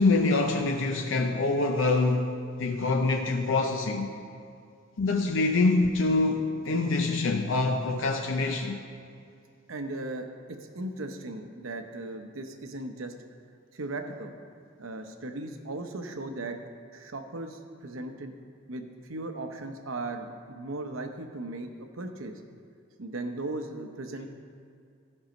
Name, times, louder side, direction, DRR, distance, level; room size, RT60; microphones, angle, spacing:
voice 1, 0.0-2.3 2.6-4.1 5.0-8.8, left 3 dB, 65° left, 4 dB, 0.5 m, -25 dB
voice 2, 9.7-13.1 13.7-14.3 14.8-16.6 16.9-18.3 18.7-22.4 23.0-24.3, right 2 dB, 80° right, 6 dB, 0.8 m, -37 dB
13.5 x 5.4 x 5.1 m, 2.3 s
head